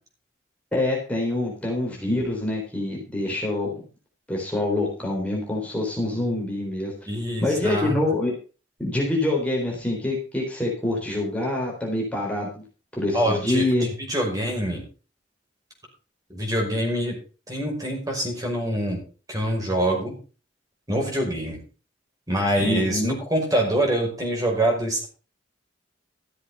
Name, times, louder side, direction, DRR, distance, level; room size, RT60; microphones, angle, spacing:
voice 1, 0.7-3.8 4.3-6.9 7.4-8.3 8.8-12.5 13.0-13.9 22.6-23.2, left 1 dB, 5° left, -3 dB, 3.7 m, -25 dB
voice 2, 7.1-8.0 13.1-13.7 14.1-14.8 16.3-17.2 17.5-19.0 19.3-20.2 20.9-21.6 22.3-25.0, right 1 dB, 20° right, 0 dB, 5.6 m, -25 dB
14.0 x 7.8 x 5.5 m, 0.35 s
head